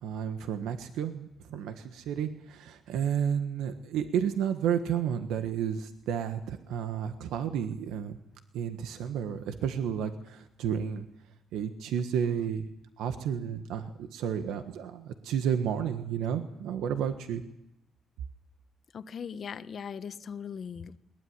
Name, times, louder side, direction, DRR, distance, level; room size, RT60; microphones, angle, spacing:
voice 1, 0.0-8.2 8.5-11.0 11.5-12.7 13.0-17.4, right 8 dB, 90° right, 8 dB, 1.4 m, -31 dB
voice 2, 18.9-21.0, left 7 dB, 55° left, 11 dB, 1.2 m, -39 dB
21.5 x 19.0 x 9.6 m, 0.84 s
cardioid pair, 90°, 0 cm